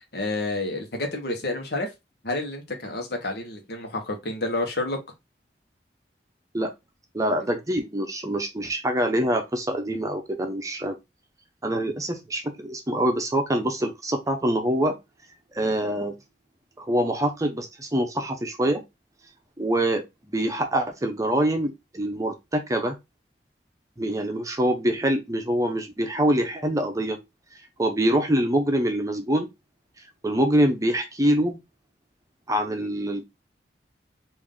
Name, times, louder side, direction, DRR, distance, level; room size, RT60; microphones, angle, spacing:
voice 1, 0.1-1.9 2.2-5.0, left 2 dB, 65° left, 1.1 m, -29 dB
voice 2, 7.1-10.9 11.6-14.9 15.5-16.1 16.8-18.8 19.6-23.0 24.0-27.2 27.8-29.5 30.2-31.6 32.5-33.2, right 1 dB, 20° right, 0.7 m, -25 dB
3.5 x 2.6 x 3.7 m
head